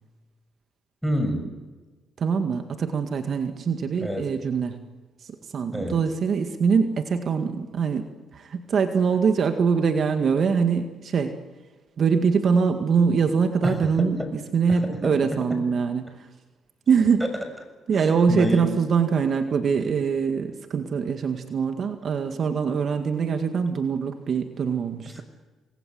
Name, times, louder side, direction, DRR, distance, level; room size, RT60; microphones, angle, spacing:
voice 1, 1.0-1.5 4.0-4.3 5.7-6.0 13.6-14.3 14.8-15.6 17.9-18.7, equal, ahead, 7 dB, 6.7 m, -28 dB
voice 2, 2.2-4.8 5.2-8.1 8.3-11.3 12.0-14.2 14.5-16.3 16.9-17.3 17.9-25.2, right 6 dB, 55° right, 6 dB, 1.9 m, -23 dB
28.0 x 20.5 x 7.9 m, 1.3 s
cardioid pair, 90°, 0 cm